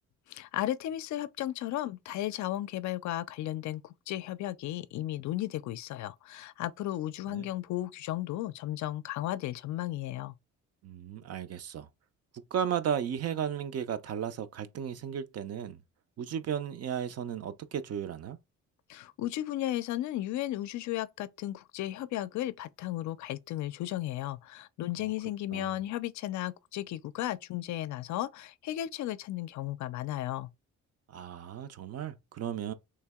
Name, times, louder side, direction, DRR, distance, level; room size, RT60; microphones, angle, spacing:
voice 1, 0.3-10.4 18.9-30.5, left 14 dB, 70° left, 0.5 m, -35 dB
voice 2, 10.8-11.9 12.3-15.8 16.2-18.4 25.0-25.1 25.5-25.8 31.1-32.7, right 8 dB, 55° right, 0.6 m, -35 dB
3.2 x 2.8 x 3.5 m
cardioid pair, 90°, 30 cm